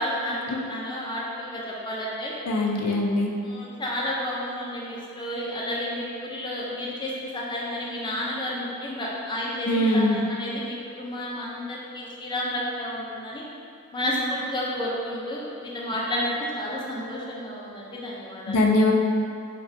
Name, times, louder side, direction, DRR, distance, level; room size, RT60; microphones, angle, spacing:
voice 1, 0.0-2.3 3.4-13.4 13.9-18.6, left 1 dB, 20° left, -5 dB, 0.5 m, -31 dB
voice 2, 2.5-3.3 9.7-10.2 18.5-18.9, left 1 dB, 80° left, -1 dB, 0.5 m, -21 dB
4.9 x 2.3 x 2.7 m, 2.5 s
head